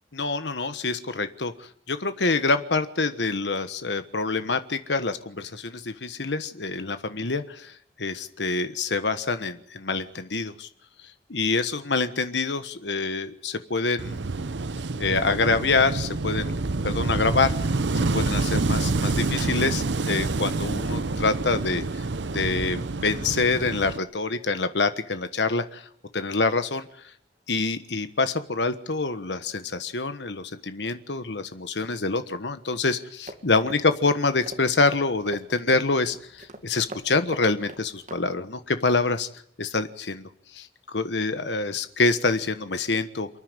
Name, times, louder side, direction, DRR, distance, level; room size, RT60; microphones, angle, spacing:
voice 1, 0.1-1.5 1.9-10.7 11.3-14.2 15.0-16.5 16.8-17.6 18.1-21.8 22.3-25.9 26.1-26.9 27.5-39.3 39.6-43.3, left 3 dB, 80° left, 10 dB, 1.3 m, -26 dB
Wind / Waves surf, 14.0-24.0, right 3 dB, 90° right, 0.8 m, -27 dB
sound 1, 33.3-38.2, right 1 dB, 45° right, 2.2 m, -43 dB
28.5 x 9.9 x 9.1 m, 0.68 s
head